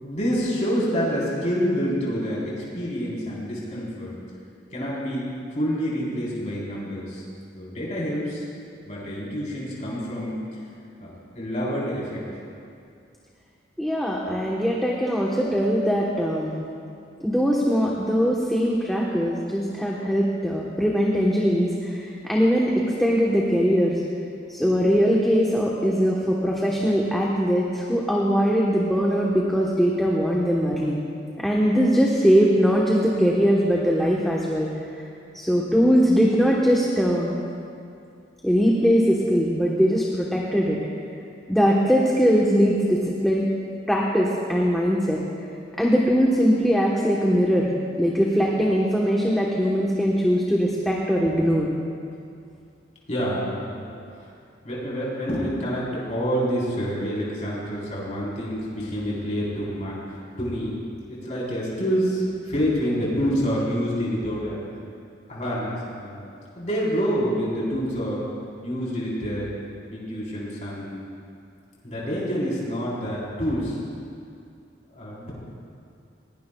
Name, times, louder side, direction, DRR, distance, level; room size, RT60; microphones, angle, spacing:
voice 1, 0.0-4.2 4.7-7.2 7.5-8.4 8.8-10.4 11.0-12.2 53.1-53.8 54.1-54.3 54.6-64.6 65.3-66.2 66.6-68.2 68.6-69.5 69.9-71.0 71.8-73.8 74.9-75.3, equal, 40° left, -6 dB, 3.9 m, -27 dB
voice 2, 13.8-16.5 17.2-24.0 24.5-31.0 31.4-34.7 35.3-37.3 38.4-40.8 41.5-43.5 43.9-45.2 45.8-47.7 48.0-51.7, equal, ahead, -4 dB, 1.1 m, -21 dB
20.0 x 17.5 x 2.3 m, 2.5 s
head